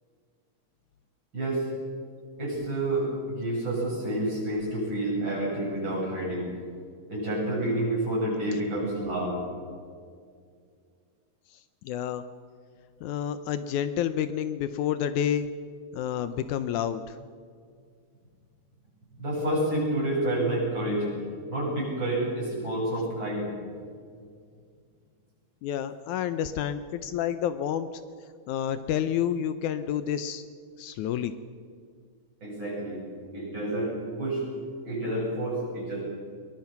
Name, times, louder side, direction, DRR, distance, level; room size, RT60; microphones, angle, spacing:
voice 1, 1.3-1.7 2.4-6.5 7.1-9.4 19.1-23.5 32.4-33.0 33.3-34.4 34.8-36.0, right 1 dB, 35° right, -5 dB, 8.7 m, -29 dB
voice 2, 11.8-12.2 13.0-15.5 15.9-17.2 25.6-27.9 28.5-30.4 30.8-31.3, left 9 dB, 75° left, 12 dB, 2.1 m, -29 dB
22.5 x 21.0 x 5.9 m, 2.2 s
omnidirectional pair, 3.6 m